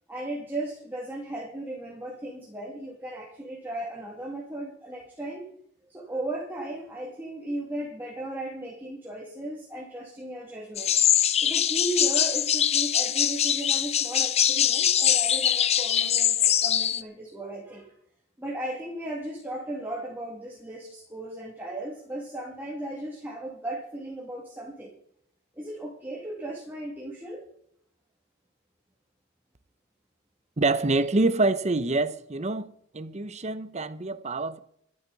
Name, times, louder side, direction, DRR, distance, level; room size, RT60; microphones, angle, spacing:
voice 1, 0.1-5.4 5.8-10.9 11.4-17.9 18.4-25.0 25.6-27.4, right 1 dB, 10° right, 2.4 m, -36 dB
sound 1, 10.8-17.0, left 10 dB, 30° left, 0.5 m, -23 dB
voice 2, 30.6-34.6, right 2 dB, 35° right, 0.8 m, -26 dB
26.0 x 8.7 x 4.1 m
head